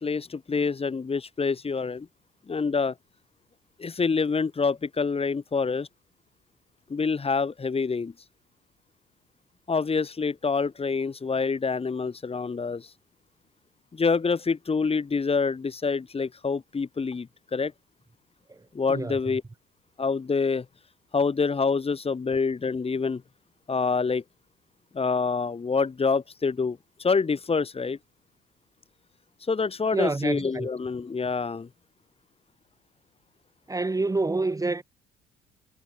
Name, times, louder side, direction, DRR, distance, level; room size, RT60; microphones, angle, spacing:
voice 1, 0.0-2.1 2.5-2.9 3.8-5.9 6.9-8.1 9.7-12.9 13.9-17.7 18.7-19.4 20.0-20.6 21.1-23.2 23.7-24.2 24.9-28.0 29.5-31.7, left 4 dB, 30° left, 3.1 m, -26 dB
voice 2, 29.9-30.7 33.7-34.8, right 3 dB, 15° right, 1.9 m, -27 dB
figure-of-eight pair, 50°, 21 cm